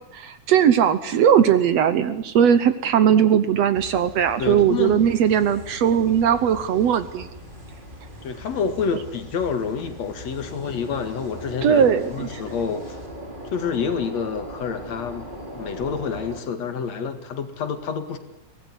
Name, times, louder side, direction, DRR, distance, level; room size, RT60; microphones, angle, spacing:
voice 1, 0.1-7.3 11.6-12.3, right 8 dB, 65° right, 13 dB, 2.0 m, -19 dB
sound 1, 3.7-16.4, equal, 15° right, 3.4 m, -39 dB
voice 2, 4.4-5.1 8.2-13.0 13.4-15.3 15.5-18.2, left 6 dB, 60° left, 9 dB, 3.0 m, -28 dB
23.5 x 18.5 x 9.7 m, 0.83 s
omnidirectional pair, 3.6 m